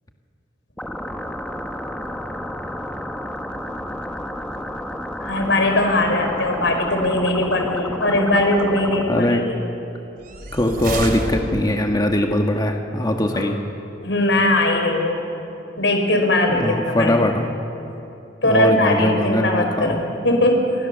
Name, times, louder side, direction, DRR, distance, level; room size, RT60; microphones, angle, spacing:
sound 1, 0.8-9.0, left 1 dB, 5° left, 1.5 m, -31 dB
voice 1, 5.2-9.4 13.3-13.5 14.0-15.2 15.8-17.2 18.4-20.9, left 1 dB, 85° left, 4 dB, 5.0 m, -20 dB
voice 2, 9.1-9.4 10.5-13.6 16.5-17.5 18.4-20.0, left 1 dB, 20° left, 3 dB, 1.6 m, -21 dB
sound 2, 10.2-12.0, right 1 dB, 55° right, 2.9 m, -28 dB
29.5 x 26.0 x 6.9 m, 2.8 s
head